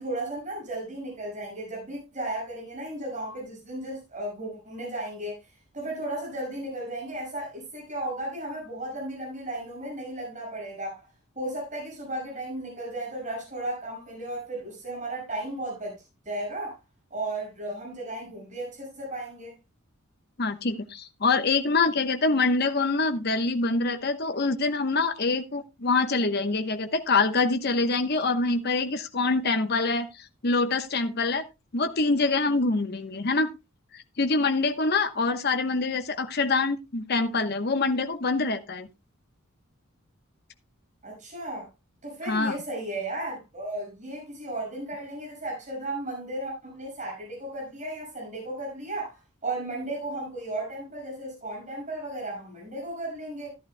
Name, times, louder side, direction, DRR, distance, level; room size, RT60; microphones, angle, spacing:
voice 1, 0.0-5.4 5.7-11.1 11.3-16.0 16.2-16.8 17.1-19.6 41.0-41.7 42.0-53.5, right 1 dB, 35° right, 6.1 m, -35 dB
voice 2, 20.4-30.1 30.4-31.4 31.7-33.5 33.9-38.9 42.2-42.6, left 3 dB, 50° left, 1.0 m, -25 dB
14.5 x 11.0 x 2.2 m
head